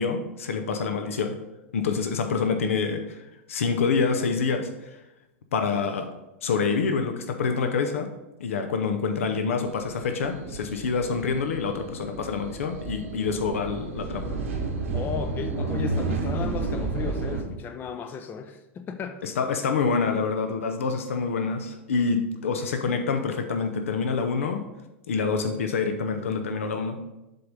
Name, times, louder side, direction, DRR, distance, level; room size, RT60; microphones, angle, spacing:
voice 1, 0.0-1.4 1.7-5.0 5.5-6.1 6.4-8.1 8.4-14.4 19.2-24.6 25.1-27.0, left 5 dB, 85° left, 7 dB, 0.7 m, -27 dB
sound 1, 9.7-17.4, right 3 dB, 90° right, 1.5 m, -31 dB
voice 2, 14.9-19.2, left 6 dB, 30° left, 8 dB, 0.5 m, -35 dB
7.7 x 3.6 x 5.3 m, 0.97 s
hypercardioid pair, 110°, 7 cm